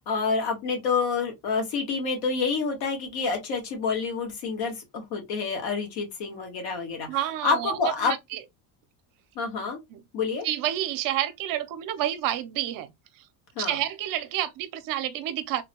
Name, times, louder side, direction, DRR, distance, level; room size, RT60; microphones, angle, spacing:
voice 1, 0.0-7.1 7.4-8.1 9.3-9.8 10.1-10.5 13.5-13.7, left 4 dB, 65° left, 1.5 m, -28 dB
voice 2, 7.1-8.4 9.9-10.0 10.4-12.9 13.2-13.3 13.6-15.6, right 12 dB, 55° right, 0.6 m, -29 dB
3.7 x 2.2 x 2.9 m
cardioid pair, 150°, 42 cm